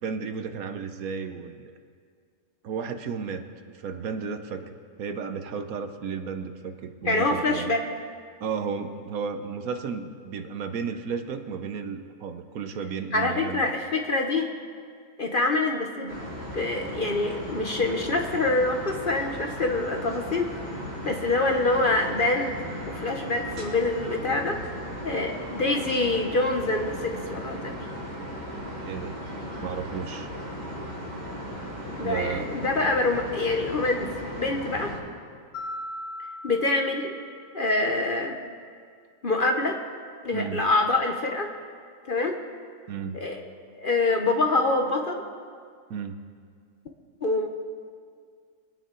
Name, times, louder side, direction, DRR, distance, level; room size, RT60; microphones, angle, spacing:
voice 1, 0.0-1.7 2.6-3.4 3.8-7.7 8.4-13.7 28.8-29.2 29.6-30.3 32.0-32.5 40.3-40.6 42.9-43.2 45.9-46.2, right 6 dB, 70° right, 7 dB, 1.2 m, -33 dB
voice 2, 7.0-7.8 13.1-14.5 15.2-16.2 16.5-20.5 21.0-22.6 22.9-24.6 25.0-27.8 32.0-34.1 34.4-34.9 36.4-37.2 37.5-38.4 39.2-39.8 40.2-41.5 42.1-42.4 43.1-43.4 43.8-45.3 47.2-47.5, left 2 dB, 45° left, 3 dB, 0.9 m, -25 dB
sound 1, 16.1-35.0, equal, 40° right, 3.2 m, -36 dB
Mallet percussion, 35.5-37.9, left 1 dB, 85° left, 2.6 m, -39 dB
23.0 x 9.0 x 3.8 m, 2.1 s
omnidirectional pair, 1.6 m